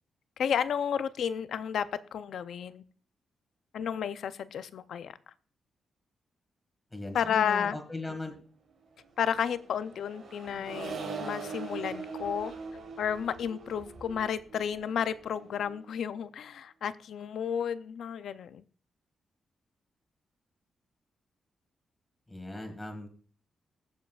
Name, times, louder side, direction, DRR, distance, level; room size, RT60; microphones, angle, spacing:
voice 1, 0.4-2.8 3.7-5.1 7.1-7.8 9.2-12.5 13.0-18.6, left 8 dB, 75° left, 14 dB, 0.5 m, -32 dB
voice 2, 6.9-8.3 22.3-23.1, left 2 dB, 10° left, 4 dB, 2.0 m, -38 dB
Accelerating revving vroom, 9.2-15.9, right 4 dB, 70° right, 3.4 m, -42 dB
22.0 x 7.4 x 2.4 m, 0.42 s
wide cardioid pair, 155°, 0 cm